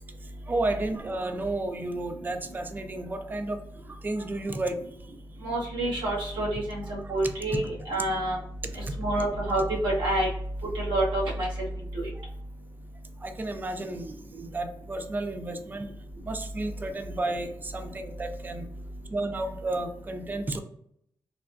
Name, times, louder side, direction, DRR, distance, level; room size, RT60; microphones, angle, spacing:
voice 1, 0.5-3.6 4.0-4.8 7.0-7.3 12.2-12.3 13.2-15.9 16.2-18.7 19.1-20.6, right 2 dB, 25° right, 7 dB, 0.3 m, -32 dB
voice 2, 5.4-8.4 8.7-10.3 10.7-11.5 11.9-12.0, right 1 dB, 85° right, -5 dB, 1.3 m, -27 dB
3.4 x 2.2 x 2.5 m, 0.71 s
wide cardioid pair, 120°, 8 cm